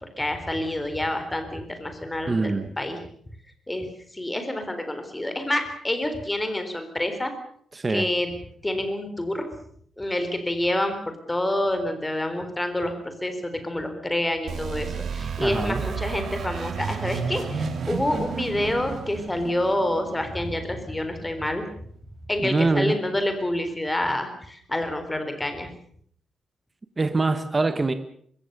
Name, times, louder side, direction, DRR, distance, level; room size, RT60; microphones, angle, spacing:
voice 1, 0.2-3.0 3.7-3.9 4.1-7.3 7.9-8.3 8.6-9.5 10.0-11.0 11.3-21.6 22.3-25.7, left 1 dB, 10° left, 3.9 m, -27 dB
voice 2, 2.3-2.7 7.7-8.1 15.4-15.8 22.4-23.0 27.0-27.9, right 3 dB, 20° right, 1.3 m, -24 dB
sound 1, 14.5-21.1, right 6 dB, 55° right, 2.9 m, -32 dB
25.0 x 21.5 x 6.8 m
wide cardioid pair, 165°, 0 cm